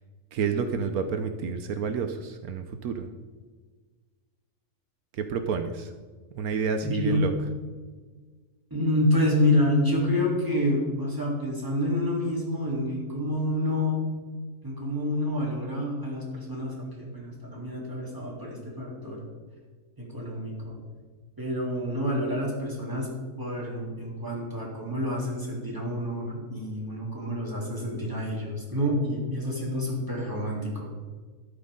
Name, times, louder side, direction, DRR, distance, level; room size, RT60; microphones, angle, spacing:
voice 1, 0.3-3.1 5.1-5.9 6.3-7.3, right 5 dB, 80° right, 8 dB, 1.3 m, -29 dB
voice 2, 6.8-7.2 8.7-14.0 14.6-19.2 20.0-20.8 21.4-23.1 23.4-30.9, left 1 dB, 15° right, -4 dB, 3.4 m, -28 dB
13.0 x 11.5 x 3.8 m, 1.4 s
omnidirectional pair, 1.6 m